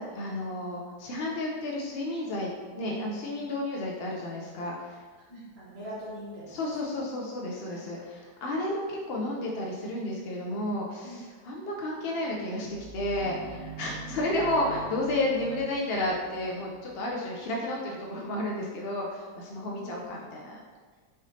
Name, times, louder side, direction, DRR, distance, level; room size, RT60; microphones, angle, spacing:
voice 1, 0.0-2.5 2.7-5.0 6.5-20.6, left 1 dB, 65° left, -2 dB, 0.6 m, -32 dB
voice 2, 5.3-6.5 6.9-7.0 7.6-7.8 11.0-11.2 14.0-14.4 19.5-20.1, equal, 45° right, -9 dB, 1.2 m, -43 dB
sound 1, 12.0-17.5, right 3 dB, 75° right, 1.1 m, -44 dB
5.2 x 3.7 x 2.7 m, 1.5 s
omnidirectional pair, 1.7 m